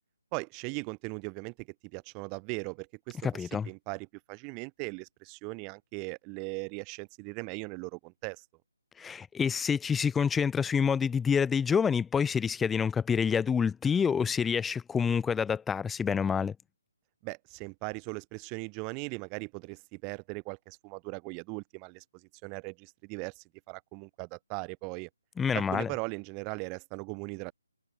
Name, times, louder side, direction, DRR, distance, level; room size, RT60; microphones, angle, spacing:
voice 1, 0.3-8.4 17.2-25.1 25.5-27.5, right 36 dB, 20° right, 5.0 m, -39 dB
voice 2, 3.2-3.7 9.0-16.6 25.4-25.9, left 6 dB, 5° left, 1.9 m, -27 dB
figure-of-eight pair, 145°, 0 cm